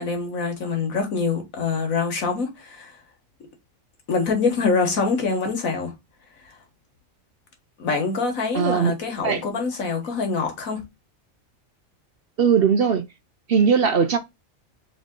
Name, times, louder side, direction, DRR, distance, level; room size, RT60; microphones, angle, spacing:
voice 1, 0.0-3.0 4.1-5.9 6.4-6.6 7.8-10.8, left 4 dB, 80° left, 1.8 m, -25 dB
voice 2, 8.5-8.9 9.2-9.4 12.4-13.0 13.5-14.2, right 6 dB, 55° right, 0.7 m, -19 dB
3.7 x 3.6 x 3.6 m
omnidirectional pair, 1.4 m